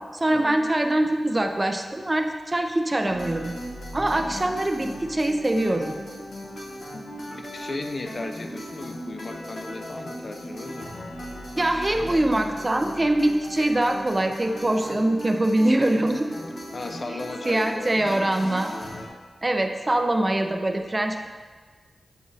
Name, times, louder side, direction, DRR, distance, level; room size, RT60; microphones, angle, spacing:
voice 1, 0.0-3.6 3.9-5.9 11.6-16.3 17.4-18.7 19.4-21.3, right 1 dB, 20° right, 5 dB, 0.4 m, -23 dB
sound 1, 3.0-19.1, equal, 65° left, 1.0 m, -37 dB
voice 2, 7.3-11.0 16.7-18.2, left 2 dB, 40° left, 6 dB, 0.4 m, -36 dB
7.7 x 4.9 x 2.7 m, 1.5 s
wide cardioid pair, 130°, 0 cm